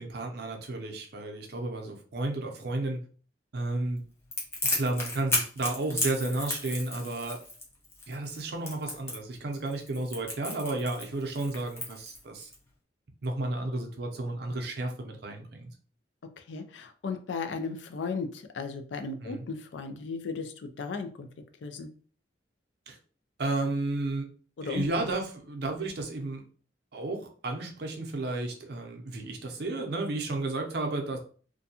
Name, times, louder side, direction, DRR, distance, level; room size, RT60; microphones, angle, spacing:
voice 1, 0.0-3.0 3.5-4.0 4.6-7.4 8.1-12.5 13.2-15.7 19.2-19.4 22.9-23.0 23.4-24.3 24.6-26.4 26.9-31.2, right 2 dB, 60° right, 3 dB, 0.6 m, -32 dB
Crackle, 4.3-12.5, left 2 dB, 15° left, 0.6 m, -33 dB
voice 2, 16.5-21.3 21.6-21.9 24.6-25.1, left 4 dB, 75° left, 7 dB, 0.4 m, -36 dB
2.5 x 2.2 x 2.7 m, 0.42 s
head